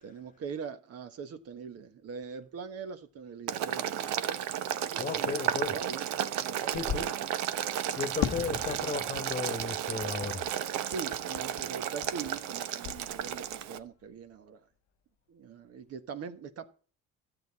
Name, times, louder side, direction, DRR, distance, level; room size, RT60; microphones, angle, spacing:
voice 1, 0.0-4.1 4.8-6.1 6.3-7.2 10.8-14.6 15.3-16.7, right 6 dB, 50° right, 1.3 m, -42 dB
Boiling, 3.5-13.8, right 10 dB, 70° right, 1.0 m, -33 dB
voice 2, 5.0-5.7 6.7-7.1 8.0-10.4, left 5 dB, 25° left, 1.3 m, -34 dB
Fireworks, 8.2-12.6 12.8-13.6, left 12 dB, 65° left, 0.8 m, -39 dB
13.0 x 8.1 x 4.1 m
cardioid pair, 130°, 30 cm